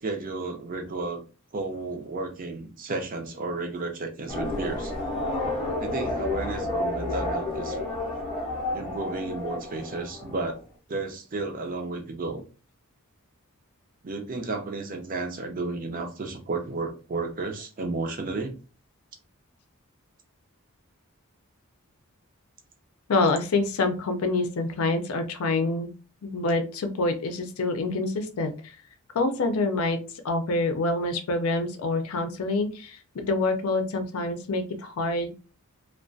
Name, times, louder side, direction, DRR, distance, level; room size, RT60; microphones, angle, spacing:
voice 1, 0.0-1.2 1.5-4.9 5.8-7.8 8.7-10.6 10.9-12.4 14.0-18.5, right 3 dB, 40° right, 4 dB, 0.5 m, -32 dB
sound 1, 4.3-10.5, left 2 dB, 20° left, 0.6 m, -31 dB
voice 2, 23.1-25.9 26.2-28.7 29.1-30.0 30.2-35.3, left 2 dB, 75° left, 7 dB, 0.4 m, -26 dB
2.3 x 2.1 x 2.5 m, 0.35 s
head